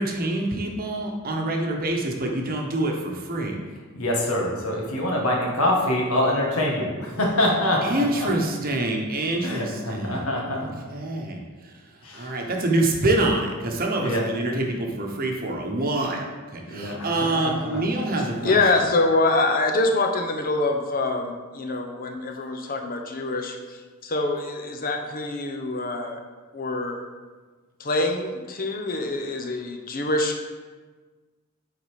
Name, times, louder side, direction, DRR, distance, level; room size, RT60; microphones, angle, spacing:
voice 1, 0.0-3.6 7.8-10.3 10.5-11.4 12.1-18.6, right 2 dB, 45° right, 1 dB, 1.0 m, -26 dB
voice 2, 3.9-8.3 9.4-10.7 12.0-12.5 14.0-14.3 16.7-17.8, left 1 dB, 80° left, -1 dB, 1.7 m, -25 dB
voice 3, 18.2-26.2 26.5-27.0 27.8-30.4, left 2 dB, 40° left, 3 dB, 0.8 m, -25 dB
8.4 x 4.1 x 4.9 m, 1.3 s
head